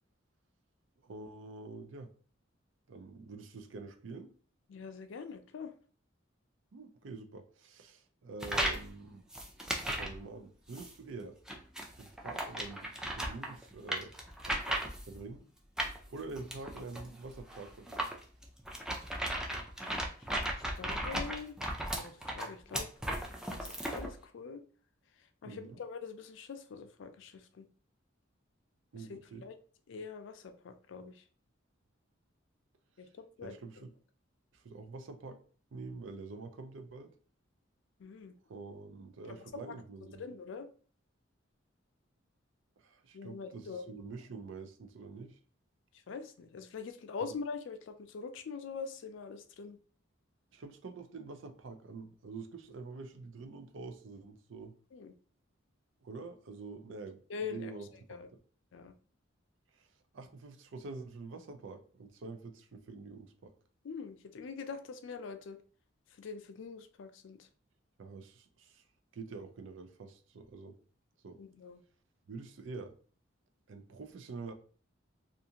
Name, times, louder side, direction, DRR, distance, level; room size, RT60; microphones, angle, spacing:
voice 1, 1.0-2.1 2.9-4.3 6.7-9.2 9.8-11.4 12.0-14.1 14.5-15.5 16.1-18.1 25.4-25.8 28.9-29.5 33.4-34.0 34.5-35.4 35.7-37.1 38.5-40.2 42.8-45.4 47.2-47.3 50.5-54.7 56.0-58.2 59.7-59.9 60.1-63.5 68.0-68.8 69.1-70.7 71.2-71.4 72.3-72.9 73.7-74.5, right 3 dB, 70° right, 7 dB, 0.5 m, -46 dB
voice 2, 4.7-5.7 20.0-20.1 20.4-21.6 22.0-22.9 23.5-24.6 25.4-27.7 29.1-29.5 29.9-31.2 33.0-33.1 33.4-33.5 38.0-38.3 40.2-40.7 43.1-43.8 46.1-49.8 54.9-55.1 57.3-57.7 58.1-58.3 58.7-58.9 63.8-65.6 66.2-67.5 71.4-71.8, left 5 dB, 65° left, 8 dB, 0.4 m, -43 dB
sound 1, 8.4-8.9 9.3-10.2 10.7-10.9 11.5-15.2 15.8-24.1, right 1 dB, 5° right, 0.4 m, -36 dB
2.5 x 2.5 x 2.8 m, 0.41 s
head